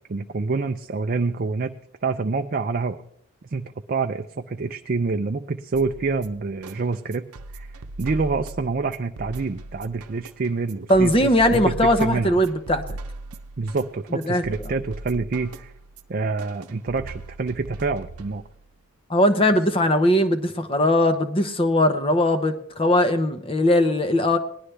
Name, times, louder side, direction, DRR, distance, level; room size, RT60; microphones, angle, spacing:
voice 1, 0.1-1.8 2.0-3.0 3.4-7.3 7.5-12.4 13.6-15.7 16.1-18.4, right 4 dB, 40° right, 5 dB, 0.4 m, -27 dB
sound 1, 5.7-18.7, right 2 dB, 90° right, 0.8 m, -39 dB
voice 2, 10.9-13.0 14.1-14.4 19.1-24.4, left 1 dB, 25° left, 10 dB, 0.8 m, -20 dB
19.0 x 11.0 x 3.4 m, 0.72 s
head